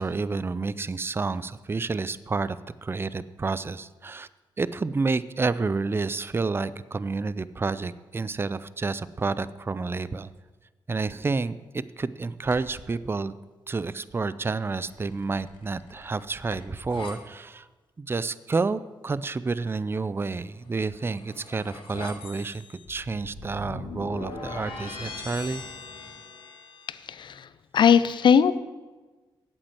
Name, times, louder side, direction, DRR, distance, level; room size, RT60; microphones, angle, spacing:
voice 1, 0.0-4.3 4.6-10.3 10.9-13.3 13.7-17.7 18.0-25.6, right 4 dB, 25° right, 17 dB, 0.5 m, -29 dB
sound 1, 12.4-12.9 14.8-17.2 20.7-27.0, left 4 dB, 80° left, 1.6 m, -41 dB
voice 2, 27.1-27.5 27.7-28.6, left 7 dB, 60° left, 15 dB, 0.6 m, -19 dB
8.7 x 7.7 x 7.8 m, 1.3 s
cardioid pair, 65°, 9 cm